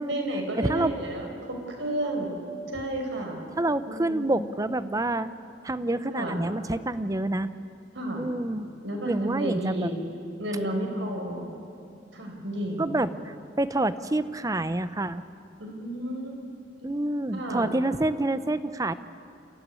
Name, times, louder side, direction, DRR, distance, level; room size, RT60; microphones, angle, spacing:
voice 1, 0.0-2.4 2.7-3.4 3.9-4.5 6.1-6.4 7.9-8.3 8.8-10.0 10.4-11.5 12.1-13.0 15.6-16.5 16.8-16.9 17.3-17.7, right 1 dB, 85° right, 2 dB, 4.7 m, -32 dB
voice 2, 0.6-0.9 3.6-5.3 5.6-7.5 8.1-8.7 9.0-9.9 12.8-15.2 16.8-18.9, right 2 dB, 20° right, 13 dB, 0.7 m, -27 dB
28.0 x 15.0 x 9.7 m, 2.5 s
head